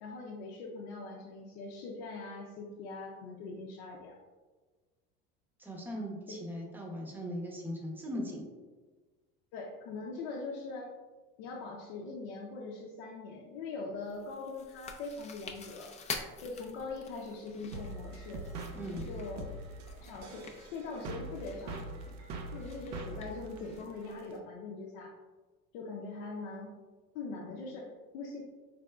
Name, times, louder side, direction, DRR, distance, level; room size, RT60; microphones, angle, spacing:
voice 1, 0.0-4.2 6.3-6.4 9.5-10.9 11.4-15.9 16.4-18.5 19.1-19.5 19.9-21.8 22.5-25.1 25.7-26.7 27.1-28.4, left 3 dB, 80° left, -2 dB, 0.6 m, -42 dB
voice 2, 5.6-8.4 18.7-19.1, equal, 5° right, -1 dB, 0.7 m, -39 dB
Chewing mastication, 14.1-23.9, left 4 dB, 20° left, 0.4 m, -47 dB
sound 1, 17.7-24.4, right 2 dB, 60° right, 0.6 m, -43 dB
3.7 x 3.3 x 2.3 m, 1.3 s
supercardioid pair, 105°, 31 cm